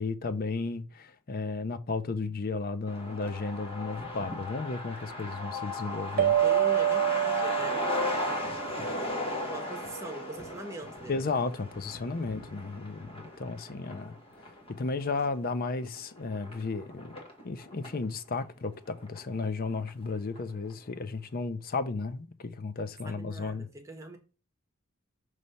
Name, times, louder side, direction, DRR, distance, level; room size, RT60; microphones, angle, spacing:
voice 1, 0.0-6.4 11.1-14.1 14.8-17.2 17.4-23.7, left 3 dB, 45° left, 0.6 m, -34 dB
Truck, 2.9-18.1 18.4-18.5 18.7-19.6 19.9-20.0 20.4-20.7, left 2 dB, 30° left, 1.3 m, -37 dB
sound 1, 6.2-9.2, right 11 dB, 45° right, 0.4 m, -27 dB
voice 2, 6.4-8.4 9.4-11.3 23.0-24.2, right 2 dB, 15° right, 1.2 m, -43 dB
5.4 x 3.3 x 5.4 m
head